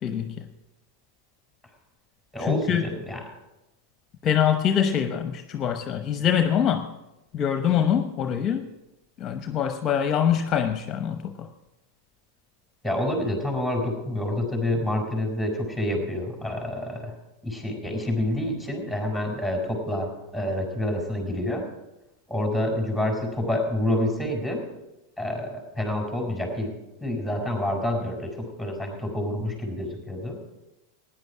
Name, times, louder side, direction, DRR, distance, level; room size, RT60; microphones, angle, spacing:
voice 1, 0.0-0.4 2.5-2.8 4.2-6.9 7.3-8.6 9.2-11.5, left 8 dB, 35° left, 8 dB, 0.8 m, -24 dB
voice 2, 2.3-3.2 12.8-17.1 17.4-21.7 22.3-24.6 25.2-26.7 27.0-30.4, left 1 dB, 5° right, 1 dB, 4.5 m, -28 dB
16.0 x 10.0 x 4.8 m, 0.96 s
hypercardioid pair, 95°, 0 cm